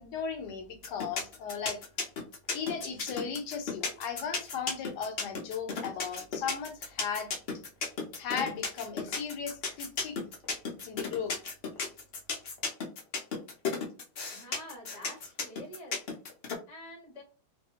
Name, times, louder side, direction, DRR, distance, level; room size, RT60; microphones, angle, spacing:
voice 1, 0.0-1.8 2.5-7.3 8.2-10.2 10.8-11.3, left 6 dB, 80° left, 1.2 m, -36 dB
sound 1, 0.8-16.5, left 4 dB, 60° left, 0.6 m, -33 dB
voice 2, 14.3-16.0 16.7-17.2, left 1 dB, 30° left, 0.8 m, -47 dB
2.7 x 2.5 x 2.8 m
omnidirectional pair, 1.8 m